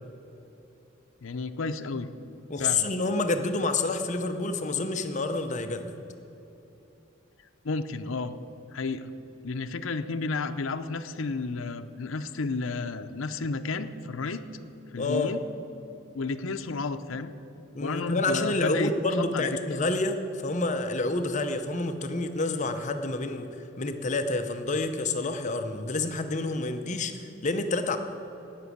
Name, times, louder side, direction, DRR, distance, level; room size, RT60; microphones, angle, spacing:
voice 1, 1.2-2.1 2.6-2.9 7.6-8.4 8.7-9.1 9.4-14.4 14.9-15.4 16.1-17.3 17.8-18.9 19.2-19.6, left 3 dB, 75° left, 7 dB, 0.6 m, -32 dB
voice 2, 2.5-5.9 15.0-15.3 17.8-23.5 23.8-28.0, left 2 dB, 35° left, 7 dB, 0.7 m, -28 dB
17.5 x 6.1 x 8.5 m, 3.0 s
head